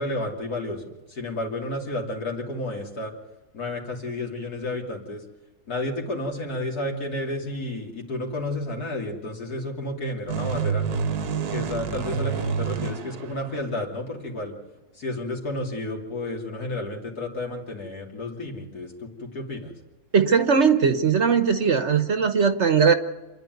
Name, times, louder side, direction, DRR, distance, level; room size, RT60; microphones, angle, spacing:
voice 1, 0.0-3.1 3.5-5.2 5.7-10.9 11.5-14.5 14.9-19.7, left 1 dB, 70° left, 0 dB, 3.4 m, -31 dB
sound 1, 10.3-14.0, right 6 dB, 80° right, 1.5 m, -28 dB
voice 2, 20.1-22.9, right 6 dB, 50° right, 9 dB, 1.2 m, -19 dB
28.0 x 10.5 x 9.4 m, 1.2 s
omnidirectional pair, 1.7 m